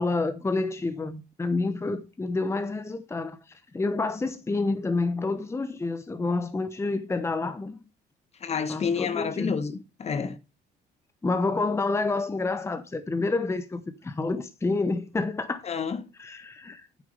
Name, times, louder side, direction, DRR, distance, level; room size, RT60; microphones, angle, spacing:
voice 1, 0.0-3.4 3.7-7.8 8.7-9.5 11.2-15.6 16.2-16.9, left 3 dB, 15° left, 0.9 m, -28 dB
voice 2, 8.4-10.4 15.6-16.1, left 6 dB, 40° left, 1.2 m, -29 dB
9.3 x 6.5 x 5.3 m
cardioid pair, 110°, 17 cm